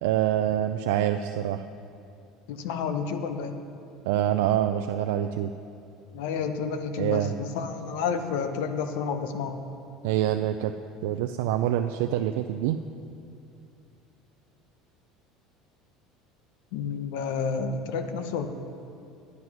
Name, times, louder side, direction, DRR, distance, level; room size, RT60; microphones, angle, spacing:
voice 1, 0.0-1.6 4.0-5.5 7.0-7.4 10.0-10.7 11.0-12.8, right 11 dB, 85° right, 7 dB, 0.3 m, -26 dB
voice 2, 2.5-3.6 6.1-9.6 16.7-18.5, left 6 dB, 75° left, 8 dB, 0.8 m, -30 dB
9.7 x 9.5 x 6.0 m, 2.5 s
cardioid pair, 175°, 0 cm